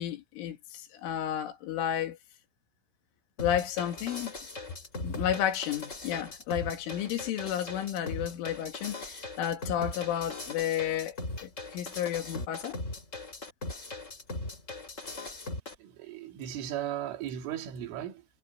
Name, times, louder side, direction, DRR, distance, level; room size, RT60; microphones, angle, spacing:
voice 1, 0.0-2.2 3.4-4.3 5.0-12.8, left 10 dB, 80° left, 4.6 m, -32 dB
sound 1, 3.4-15.7, left 2 dB, 15° left, 3.8 m, -39 dB
voice 2, 15.8-18.3, right 11 dB, 75° right, 4.9 m, -36 dB
omnidirectional pair, 5.7 m